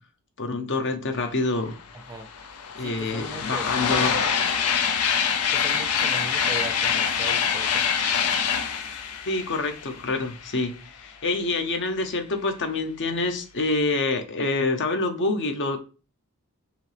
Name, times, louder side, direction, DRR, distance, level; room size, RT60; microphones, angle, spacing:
voice 1, 0.4-1.7 2.8-4.1 9.3-10.7 11.0-15.8, left 3 dB, 55° left, 6 dB, 0.8 m, -26 dB
sound 1, 1.7-1.8 2.0-10.6, left 7 dB, 85° left, 0.6 m, -25 dB
voice 2, 2.8-3.7 4.0-4.1 5.5-7.8, right 2 dB, 15° right, 8 dB, 0.5 m, -38 dB
5.0 x 3.0 x 3.3 m, 0.34 s
head